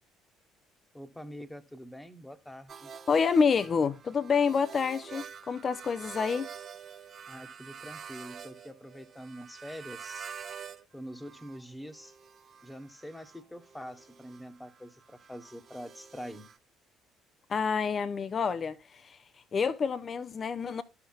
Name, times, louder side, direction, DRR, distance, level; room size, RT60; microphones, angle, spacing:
voice 1, 0.9-2.9 7.3-10.3 10.9-12.2 12.6-16.5, equal, 10° left, 1.3 m, -45 dB
sound 1, 2.7-10.8 11.1-16.6, right 7 dB, 45° right, 0.8 m, -47 dB
voice 2, 3.1-6.5 17.5-19.2 19.5-20.8, left 5 dB, 40° left, 0.7 m, -28 dB
12.5 x 5.9 x 2.3 m
hypercardioid pair, 55°, 0 cm